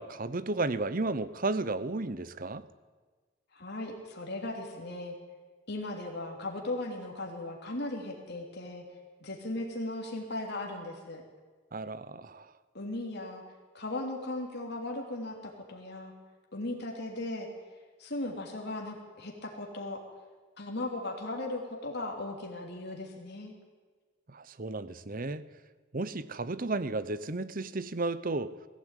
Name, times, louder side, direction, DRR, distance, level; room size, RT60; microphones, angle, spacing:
voice 1, 0.0-2.6 11.7-12.5 24.3-25.4 25.9-28.5, right 3 dB, 40° right, 0.8 m, -33 dB
voice 2, 3.5-5.1 5.7-8.8 9.2-11.2 12.7-13.4 13.7-16.1 16.5-17.5 18.0-20.0 20.6-23.5, left 2 dB, 55° left, 3.1 m, -37 dB
21.0 x 16.0 x 9.2 m
head